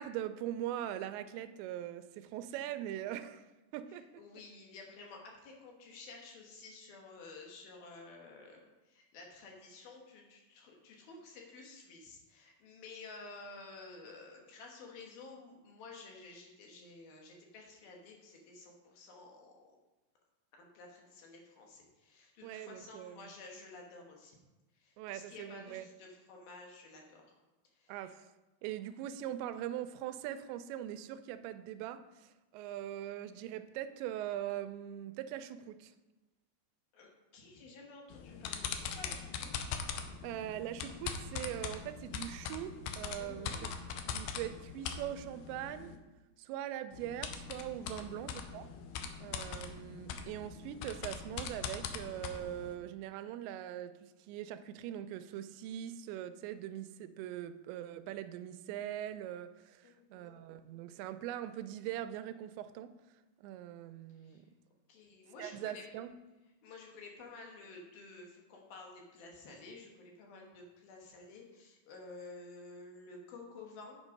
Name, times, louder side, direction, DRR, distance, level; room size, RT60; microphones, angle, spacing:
voice 1, 0.0-3.5 3.7-4.0 22.4-23.3 25.0-25.9 27.9-28.3 28.6-35.9 40.2-43.6 44.1-46.0 46.4-48.7 49.2-62.9 63.4-64.5 65.4-66.1, right 11 dB, 90° right, 11 dB, 2.8 m, -41 dB
voice 2, 3.9-19.6 20.6-24.4 24.7-27.3 27.7-28.1 36.9-39.5 43.2-43.7 47.8-48.2 59.8-60.6 64.1-64.4 64.9-65.8 66.6-74.0, left 3 dB, 65° left, 0 dB, 3.0 m, -52 dB
sound 1, 38.1-46.0 46.9-52.8, left 6 dB, 85° left, 2.1 m, -42 dB
8.8 x 6.3 x 5.2 m, 1.1 s
omnidirectional pair, 5.0 m